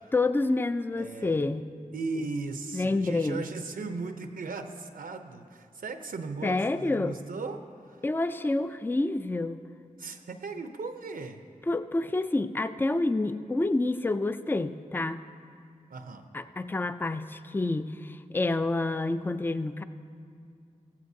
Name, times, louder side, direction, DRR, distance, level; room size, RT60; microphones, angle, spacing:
voice 1, 0.1-1.7 2.7-3.4 6.4-7.2 8.0-9.6 11.7-15.2 16.3-19.8, left 2 dB, 15° left, 11 dB, 0.4 m, -28 dB
voice 2, 0.9-1.4 1.9-8.0 10.0-11.4 15.9-16.3, right 3 dB, 75° right, 7 dB, 0.6 m, -37 dB
15.5 x 14.0 x 2.7 m, 2.2 s
wide cardioid pair, 65°, 15 cm